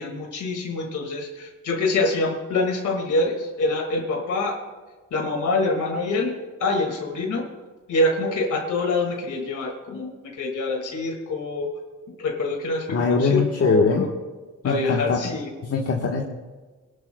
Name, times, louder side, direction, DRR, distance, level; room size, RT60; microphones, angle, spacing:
voice 1, 0.0-4.6 5.1-7.4 7.9-11.7 12.2-14.1 14.6-15.5, left 2 dB, 65° left, 1 dB, 2.1 m, -25 dB
voice 2, 12.9-14.1 14.6-15.2 15.6-16.2, left 4 dB, 50° left, -1 dB, 1.4 m, -21 dB
26.0 x 11.5 x 2.3 m, 1.3 s
cardioid pair, 130°, 32 cm